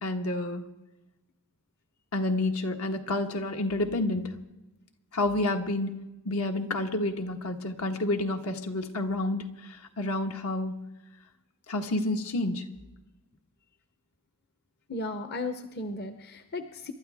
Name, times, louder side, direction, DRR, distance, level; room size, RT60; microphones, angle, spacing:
voice 1, 0.0-0.7 2.1-4.4 5.1-6.0 6.2-10.8 11.7-12.7, left 2 dB, 80° left, 5 dB, 1.5 m, -29 dB
voice 2, 14.9-16.9, left 2 dB, 45° left, 8 dB, 0.8 m, -35 dB
28.0 x 12.5 x 3.5 m, 1.0 s
head